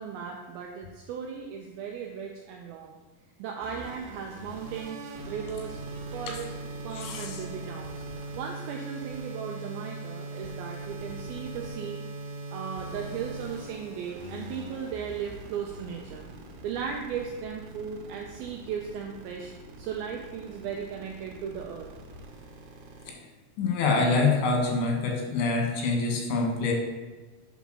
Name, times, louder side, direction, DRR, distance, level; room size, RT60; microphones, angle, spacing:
voice 1, 0.0-3.0 3.4-5.8 6.1-6.5 6.8-8.0 8.3-12.0 12.5-16.3 16.6-19.5 19.8-21.9, right 7 dB, 90° right, 1 dB, 2.1 m, -36 dB
sound 1, 3.6-23.1, right 2 dB, 75° right, 2.8 m, -41 dB
voice 2, 7.0-7.4 23.6-26.7, left 3 dB, 85° left, 1 dB, 3.6 m, -25 dB
8.2 x 4.0 x 6.1 m, 1.3 s
omnidirectional pair, 5.0 m